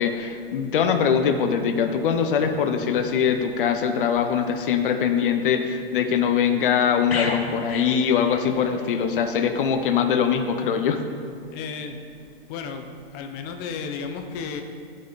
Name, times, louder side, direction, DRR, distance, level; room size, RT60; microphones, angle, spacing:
voice 1, 0.0-11.0, left 7 dB, 60° left, 7 dB, 0.9 m, -22 dB
sound 1, 7.1-9.0 9.3-9.5, left 3 dB, 90° left, 1.2 m, -33 dB
voice 2, 11.5-12.0 12.5-12.8 13.1-14.6, left 6 dB, 35° left, 6 dB, 0.9 m, -33 dB
15.0 x 5.6 x 4.1 m, 2.4 s
hypercardioid pair, 115°, 30 cm